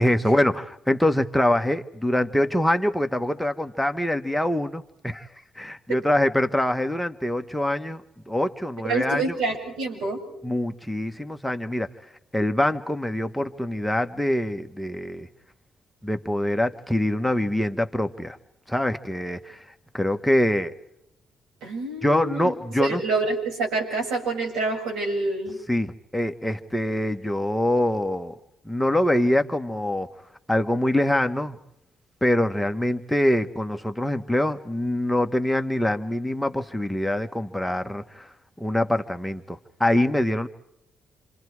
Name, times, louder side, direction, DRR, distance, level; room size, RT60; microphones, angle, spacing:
voice 1, 0.0-5.3 5.5-8.0 8.3-9.4 10.4-11.9 12.3-15.3 16.0-18.4 18.7-19.6 19.9-20.7 22.0-23.0 25.7-28.4 28.6-30.1 30.5-31.6 32.2-38.3 38.6-40.5, left 1 dB, 5° left, 6 dB, 1.2 m, -24 dB
voice 2, 8.9-10.2 21.6-22.5 22.8-25.6, right 3 dB, 90° right, 1 dB, 7.5 m, -27 dB
29.0 x 25.5 x 4.8 m, 0.80 s
cardioid pair, 90°, 0 cm